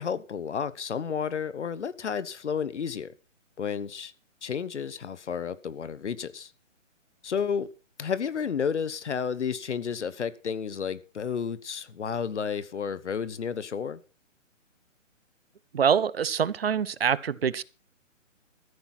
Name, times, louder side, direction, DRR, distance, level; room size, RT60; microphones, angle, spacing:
voice 1, 0.0-3.1 3.6-4.1 4.4-6.5 7.2-7.7 8.0-14.0, left 7 dB, 60° left, 1.2 m, -31 dB
voice 2, 15.7-17.6, right 7 dB, 50° right, 0.8 m, -25 dB
14.5 x 8.7 x 6.0 m
hypercardioid pair, 170°, 39 cm